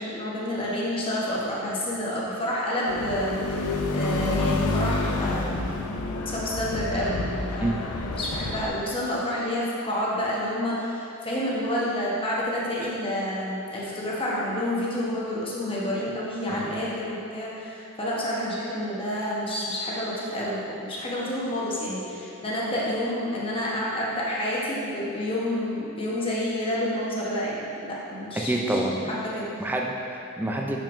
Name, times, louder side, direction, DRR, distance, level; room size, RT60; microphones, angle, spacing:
voice 1, 0.0-5.7 6.1-7.8 8.1-28.8 29.0-29.5, left 1 dB, 25° left, -6 dB, 1.0 m, -29 dB
sound 1, 2.9-8.7, left 3 dB, 80° left, 0.5 m, -28 dB
voice 2, 28.4-29.1 29.6-30.8, right 1 dB, 10° right, -1 dB, 0.4 m, -27 dB
6.6 x 5.9 x 2.5 m, 2.7 s
head